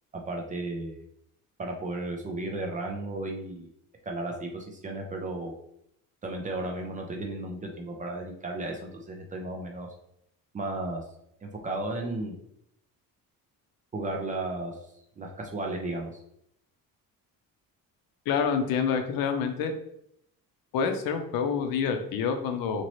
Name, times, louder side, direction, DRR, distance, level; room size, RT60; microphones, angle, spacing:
voice 1, 0.3-1.0 1.6-3.7 4.1-5.5 6.2-9.9 10.5-11.0 11.4-12.3 13.9-14.8 15.2-16.1, right 2 dB, 25° right, 1 dB, 0.3 m, -34 dB
voice 2, 18.3-19.7 20.7-22.8, left 6 dB, 75° left, 6 dB, 0.6 m, -27 dB
2.9 x 2.7 x 3.0 m, 0.74 s
cardioid pair, 155°, 35 cm